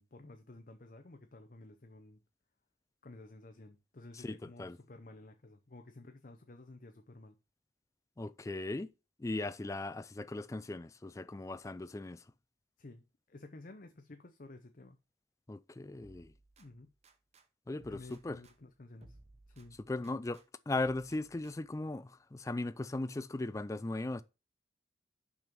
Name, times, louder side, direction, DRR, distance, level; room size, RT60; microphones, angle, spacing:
voice 1, 0.0-2.2 3.0-7.4 12.8-15.0 16.6-16.9 17.9-19.2 19.5-19.8, left 2 dB, 45° left, 0.7 m, -53 dB
voice 2, 4.2-4.8 8.2-8.9 9.2-12.2 15.5-16.3 17.7-18.0 18.2-18.4 19.9-24.2, left 2 dB, 15° left, 0.3 m, -38 dB
sound 1, 16.0-17.5 17.8-20.5 20.8-21.8, right 2 dB, 35° right, 0.9 m, -62 dB
6.1 x 5.3 x 5.9 m
head